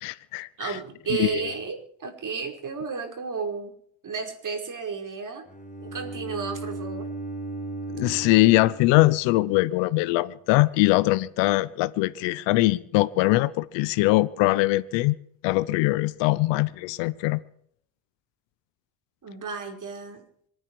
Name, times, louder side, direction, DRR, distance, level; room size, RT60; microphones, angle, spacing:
voice 1, 0.0-0.8 1.2-1.4 7.9-15.2 15.4-17.4, left 19 dB, 85° left, 0.8 m, -22 dB
voice 2, 0.6-3.7 4.0-5.4 5.8-7.1 19.2-20.2, right 5 dB, 45° right, 5.1 m, -33 dB
Bowed string instrument, 5.5-9.6, right 2 dB, 15° left, 3.6 m, -36 dB
26.5 x 9.7 x 4.7 m
supercardioid pair, 70°, 43 cm